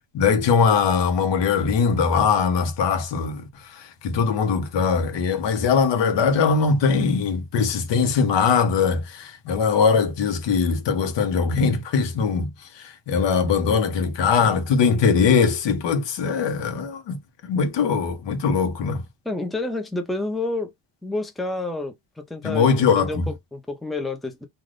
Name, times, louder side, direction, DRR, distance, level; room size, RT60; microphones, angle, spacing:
voice 1, 0.1-17.2 17.4-19.0 22.4-23.3, left 5 dB, 75° left, 1.0 m, -21 dB
voice 2, 19.2-20.7 21.0-24.5, left 2 dB, ahead, 0.6 m, -29 dB
2.5 x 2.5 x 3.2 m
cardioid pair, 95°, 43 cm